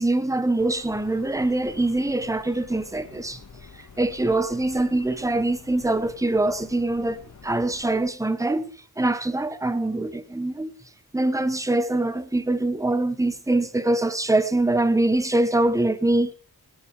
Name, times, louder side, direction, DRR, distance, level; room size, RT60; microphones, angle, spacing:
voice 1, 0.0-3.4 3.7-8.7 9.0-10.7 11.1-16.3, right 2 dB, 10° right, 1.1 m, -23 dB
sound 1, 0.6-8.1, left 5 dB, 55° left, 2.0 m, -48 dB
20.0 x 8.4 x 4.9 m
wide cardioid pair, 100°, 35 cm